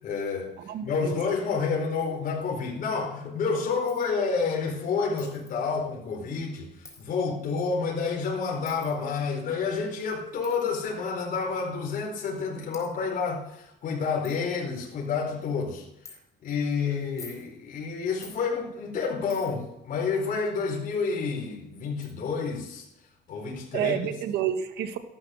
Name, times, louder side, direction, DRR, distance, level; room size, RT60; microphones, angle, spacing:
voice 1, 0.0-0.5 0.8-6.7 7.0-15.8 16.4-22.9 23.3-24.0, left 5 dB, 55° left, -1 dB, 4.7 m, -29 dB
voice 2, 0.7-1.2 23.7-25.0, right 10 dB, 80° right, 8 dB, 1.7 m, -29 dB
Coin (dropping), 3.9-4.1 5.2-5.5 6.8-7.1 8.7-9.0 10.4-10.6 11.6-11.7 12.4-12.5 12.7-12.9 13.5-13.6 13.9-14.0 14.2-14.4 14.8-15.1 16.1-16.2 17.0-17.5 18.2-18.4 19.3-19.7 21.3-21.4 22.0-22.1, left 4 dB, 20° left, 4.2 m, -48 dB
14.0 x 12.0 x 6.5 m, 0.83 s
cardioid pair, 110°, 17 cm